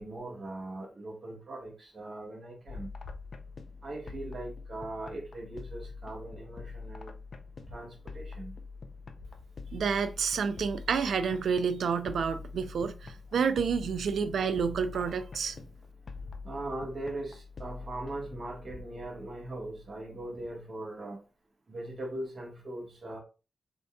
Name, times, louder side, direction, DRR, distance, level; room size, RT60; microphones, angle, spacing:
voice 1, 0.0-2.9 3.8-7.1 7.7-8.5 16.4-21.2 21.7-23.2, right 2 dB, 35° right, 1.3 m, -40 dB
sound 1, 2.7-20.3, left 4 dB, 45° left, 0.4 m, -45 dB
voice 2, 9.7-15.6, right 6 dB, 75° right, 0.4 m, -29 dB
3.9 x 3.6 x 2.2 m
wide cardioid pair, 160°, 0 cm